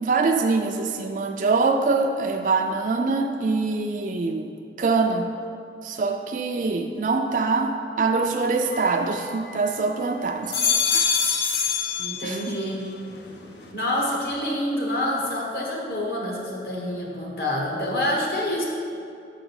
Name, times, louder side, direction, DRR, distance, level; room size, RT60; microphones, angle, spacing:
voice 1, 0.0-4.5 4.8-5.3 5.8-10.6 10.9-11.2 12.2-12.6, right 4 dB, 45° right, 4 dB, 0.3 m, -24 dB
sound 1, 8.7-9.9 10.3-12.7 13.1-13.7, left 6 dB, 75° left, 0.8 m, -26 dB
voice 2, 12.0-12.9 13.7-18.7, left 1 dB, 55° left, -2 dB, 1.3 m, -27 dB
5.7 x 4.9 x 6.3 m, 2.5 s
head